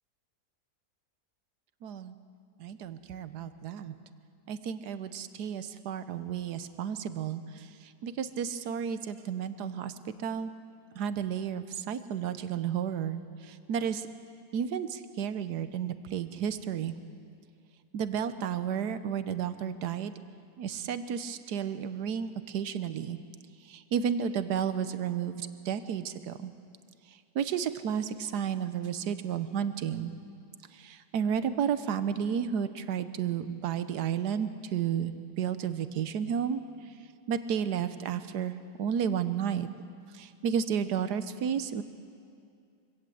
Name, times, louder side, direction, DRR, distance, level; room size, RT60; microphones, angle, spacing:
voice 1, 1.8-2.1 2.6-3.9 4.5-7.4 8.0-9.9 10.2-10.5 11.0-13.2 13.5-14.1 14.5-16.9 17.9-20.1 20.6-23.2 23.7-26.5 27.3-30.1 30.8-36.6 37.3-39.7 40.2-41.8, right 8 dB, 85° right, 12 dB, 1.4 m, -32 dB
23.5 x 17.0 x 7.7 m, 2.4 s
omnidirectional pair, 1.7 m